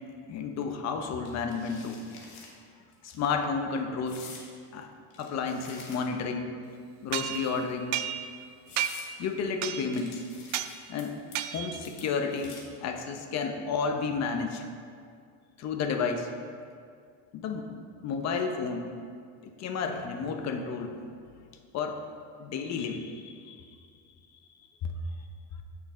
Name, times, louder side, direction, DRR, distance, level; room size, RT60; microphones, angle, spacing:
voice 1, 0.3-2.0 3.0-4.3 4.7-4.9 5.2-6.5 7.0-8.0 9.2-10.2 10.9-11.1 11.5-14.6 15.6-16.3 17.3-17.7 18.0-18.9 19.4-20.9 21.7-22.0 22.4-23.7, left 5 dB, 50° left, 5 dB, 0.9 m, -31 dB
sound 1, 1.2-2.5 2.9-3.2 4.1-4.5 5.1-6.3 7.1-7.7 8.2-8.3 8.7-9.1 9.9-11.0 11.3-11.6 11.8-12.8, left 5 dB, 75° left, 1.6 m, -48 dB
sound 2, 7.1-8.4 8.8-9.2 9.6-10.0 10.5-10.8 11.3-11.9, right 11 dB, 50° right, 0.4 m, -33 dB
8.3 x 6.0 x 3.8 m, 2.2 s
cardioid pair, 120°, 35 cm